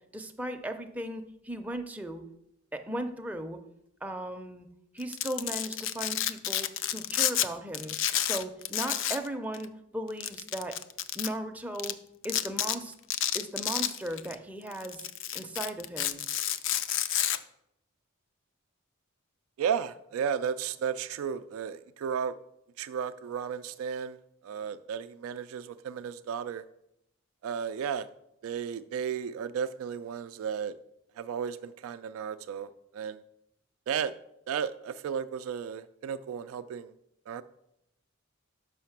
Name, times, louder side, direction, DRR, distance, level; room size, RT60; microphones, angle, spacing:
voice 1, 0.1-2.2 2.7-3.6 4.0-4.7 4.9-10.8 11.1-12.9 13.3-16.2, right 1 dB, 5° right, 4 dB, 0.5 m, -37 dB
Domestic sounds home sounds, 5.0-7.5 7.7-9.3 9.5-9.7 10.2-11.3 11.8-11.9 12.2-12.8 13.1-14.3 14.7-17.4, left 11 dB, 60° left, 0.4 m, -30 dB
voice 2, 19.6-22.4 22.8-24.2 24.4-26.6 27.4-28.1 28.4-30.7 31.2-33.2 33.9-34.1 34.5-36.9 37.3-37.4, right 7 dB, 90° right, 11 dB, 0.3 m, -34 dB
5.8 x 5.6 x 5.8 m, 0.79 s
head